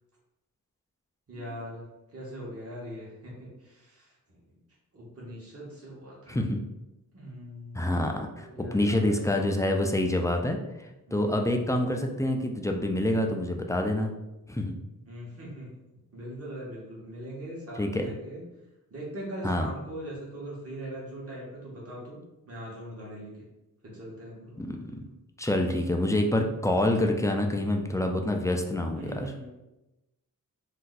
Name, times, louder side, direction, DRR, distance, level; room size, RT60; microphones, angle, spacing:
voice 1, 1.3-4.6 4.9-6.4 7.1-8.0 8.4-9.5 11.1-11.6 15.0-18.4 18.9-22.2 22.5-23.5 23.8-24.6 29.0-29.5, right 1 dB, 40° right, -5 dB, 1.1 m, -41 dB
voice 2, 6.3-6.6 7.7-10.6 11.1-14.1 14.5-14.8 17.8-18.1 19.4-19.7 24.6-25.0 25.4-29.2, left 1 dB, 10° left, 3 dB, 0.3 m, -27 dB
2.6 x 2.2 x 3.9 m, 0.99 s
wide cardioid pair, 70°, 35 cm